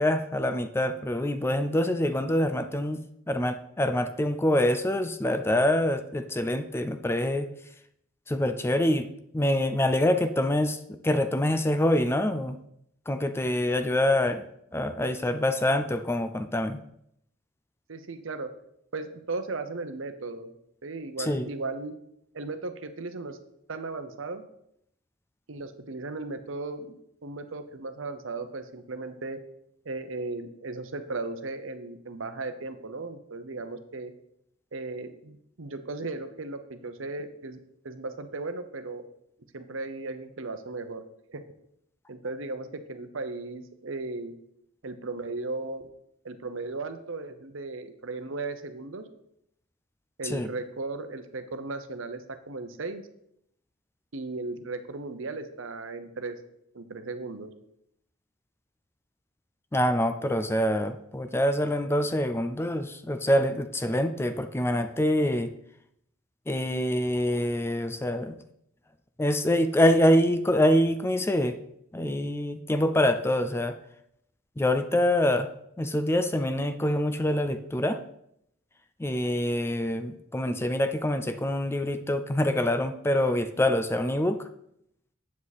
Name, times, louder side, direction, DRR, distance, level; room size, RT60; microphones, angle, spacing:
voice 1, 0.0-3.0 3.3-7.5 8.3-9.1 9.3-12.6 13.1-14.5 14.7-16.8 21.2-21.5 50.2-50.5 59.7-65.5 66.5-68.4 69.2-71.6 71.9-73.8 74.6-75.5 75.8-78.0 79.0-84.4, left 1 dB, 10° left, 9 dB, 0.4 m, -25 dB
voice 2, 17.9-18.5 18.9-20.5 20.8-21.9 22.3-23.4 23.7-24.4 25.5-29.4 29.8-34.1 34.7-37.6 37.8-39.1 39.5-41.0 41.3-41.4 42.1-44.3 44.8-45.8 46.2-49.0 50.2-53.0 54.1-56.4 56.7-57.5, right 3 dB, 70° right, 9 dB, 0.8 m, -36 dB
8.3 x 7.4 x 4.2 m, 0.74 s
head